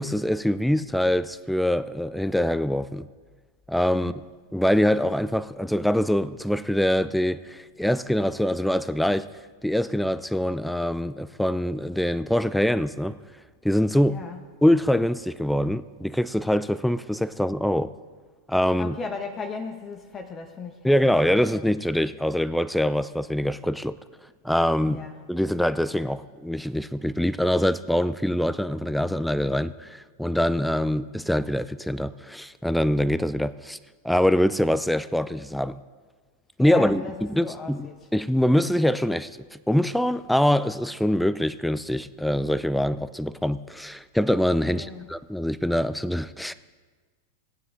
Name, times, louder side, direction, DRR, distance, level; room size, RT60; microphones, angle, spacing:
voice 1, 0.0-3.1 3.7-4.1 4.5-9.3 9.6-13.2 13.6-14.2 14.6-17.9 18.5-19.0 20.8-24.0 24.4-25.0 25.3-33.8 34.0-35.8 36.6-39.3 39.7-46.5, equal, ahead, 0.4 m, -24 dB
voice 2, 14.1-14.4 18.8-21.7 24.9-25.2 36.6-38.0 44.7-45.1, left 4 dB, 30° left, 1.0 m, -37 dB
17.0 x 9.5 x 3.8 m
hypercardioid pair, 110°, 0 cm